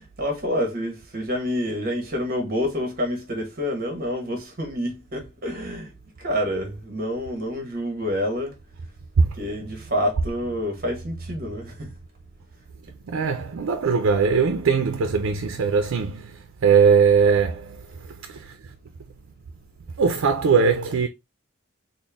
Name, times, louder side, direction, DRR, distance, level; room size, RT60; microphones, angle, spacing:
voice 1, 0.0-5.9 6.2-8.6 9.4-11.9, equal, 45° right, 1.1 m, -28 dB
voice 2, 13.1-18.7 20.0-21.1, right 5 dB, 85° right, 0.4 m, -21 dB
4.1 x 2.1 x 3.4 m
head